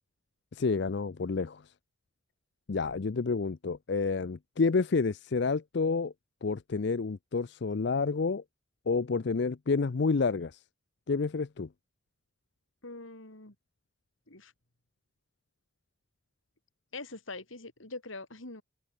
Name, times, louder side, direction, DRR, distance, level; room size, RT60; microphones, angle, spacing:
voice 1, 0.5-1.6 2.7-6.1 6.4-8.4 8.9-10.6 11.1-11.7, left 4 dB, 55° left, 0.5 m, -29 dB
voice 2, 12.8-13.5 14.3-14.5 16.9-18.6, left 3 dB, 80° left, 4.1 m, -43 dB
head